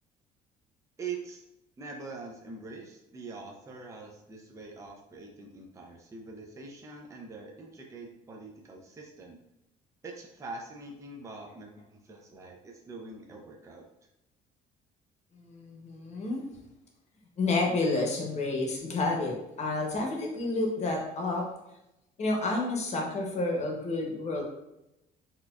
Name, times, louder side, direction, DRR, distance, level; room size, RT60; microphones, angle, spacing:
voice 1, 1.0-1.4 1.8-9.4 10.0-13.8, right 4 dB, 20° right, 0 dB, 0.4 m, -44 dB
voice 2, 15.3-16.4 17.4-21.5 22.2-24.4, left 2 dB, 40° left, 0 dB, 0.9 m, -30 dB
4.2 x 2.3 x 2.3 m, 0.89 s
cardioid pair, 110°, 17 cm